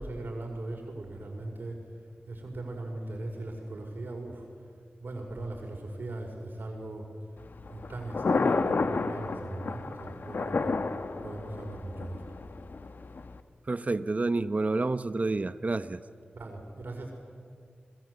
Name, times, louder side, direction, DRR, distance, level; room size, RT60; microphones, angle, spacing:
voice 1, 0.0-1.8 2.3-4.5 5.0-7.1 7.7-10.8 11.2-12.2 16.3-17.1, right 2 dB, 70° right, 2 dB, 5.3 m, -39 dB
Thunder, 7.4-13.4, left 3 dB, 65° left, 1.3 m, -31 dB
voice 2, 13.7-16.0, right 3 dB, 45° right, 13 dB, 1.0 m, -29 dB
27.5 x 21.0 x 8.3 m, 2.2 s
cardioid pair, 60°, 4 cm